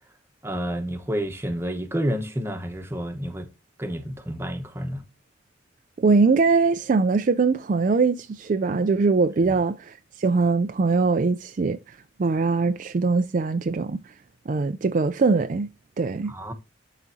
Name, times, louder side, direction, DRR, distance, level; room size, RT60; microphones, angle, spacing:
voice 1, 0.4-3.5 3.8-5.0 9.4-9.5 16.3-16.5, equal, 15° right, 1.0 m, -29 dB
voice 2, 6.0-14.0 14.5-15.7 16.0-16.3, right 4 dB, 45° right, 0.4 m, -22 dB
12.0 x 4.0 x 2.7 m
head